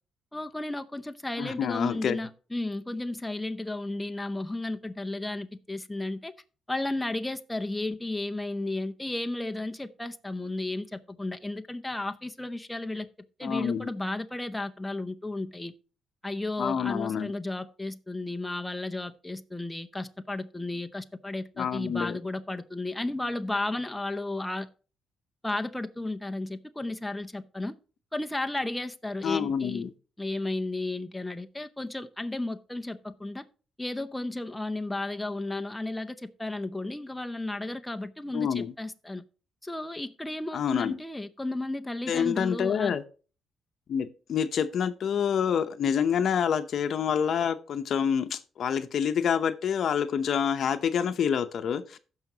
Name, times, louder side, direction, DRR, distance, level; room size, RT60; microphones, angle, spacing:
voice 1, 0.3-6.3 6.7-13.1 13.4-15.7 16.2-24.7 25.4-27.8 28.1-29.8 30.2-33.5 33.8-39.2 39.6-42.9, left 2 dB, 10° left, 0.7 m, -33 dB
voice 2, 1.4-2.2 13.4-13.9 16.6-17.3 21.6-22.2 29.2-29.9 38.3-38.7 40.5-41.0 42.1-43.0 43.9-52.0, left 7 dB, 60° left, 0.8 m, -27 dB
15.5 x 5.7 x 2.9 m
cardioid pair, 90°, 0 cm